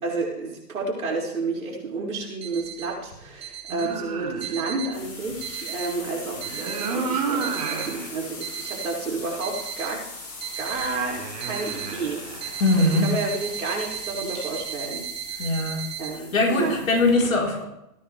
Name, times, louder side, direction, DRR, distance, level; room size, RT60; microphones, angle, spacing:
voice 1, 0.0-10.0 10.6-12.2 12.8-15.0 15.3-15.5 16.0-16.8, right 3 dB, 60° right, -3 dB, 5.8 m, -30 dB
sound 1, 2.4-2.9 3.4-3.9 4.4-4.9 5.4-5.9 6.4-6.9 7.4-7.9 8.4-8.9 9.4-9.9 10.4-10.9 11.4-11.9 12.4-16.1, right 11 dB, 40° right, 3.8 m, -35 dB
sound 2, 3.7-4.8 6.3-8.1 8.6-8.7 10.6-13.2, right 5 dB, 25° right, 1.4 m, -32 dB
sound 3, 4.9-17.1, left 3 dB, 30° left, 6.1 m, -40 dB
voice 2, 12.6-13.1 15.4-16.0 16.3-17.6, left 2 dB, 55° left, -1 dB, 4.1 m, -21 dB
19.0 x 10.0 x 3.4 m, 0.83 s
hypercardioid pair, 160°, 48 cm